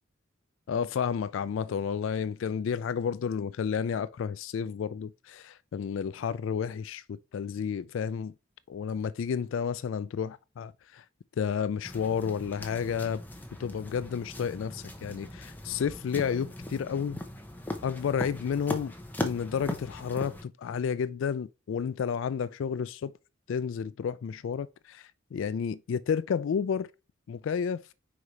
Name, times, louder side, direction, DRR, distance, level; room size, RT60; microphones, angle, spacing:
voice 1, 0.7-8.3 8.7-11.0 11.4-13.2 13.6-17.2 17.8-18.9 19.2-23.1 23.5-26.9 27.3-27.8, left 7 dB, 65° left, 0.3 m, -31 dB
sound 1, 11.8-20.4, left 1 dB, 10° left, 0.8 m, -39 dB
4.8 x 4.8 x 4.0 m
head